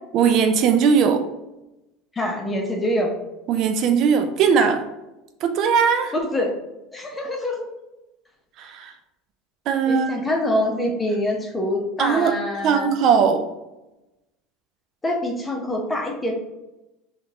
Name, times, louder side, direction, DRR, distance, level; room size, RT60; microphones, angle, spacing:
voice 1, 0.1-1.2 3.5-4.8 5.4-6.1 8.6-8.9 9.7-10.3 12.0-12.3 12.6-13.5, right 6 dB, 55° right, 7 dB, 0.3 m, -19 dB
voice 2, 2.2-3.1 6.1-6.5 6.9-7.7 9.9-12.9 15.0-16.3, left 1 dB, 20° left, 1 dB, 0.8 m, -25 dB
3.7 x 2.4 x 2.8 m, 0.96 s
hypercardioid pair, 85°, 0 cm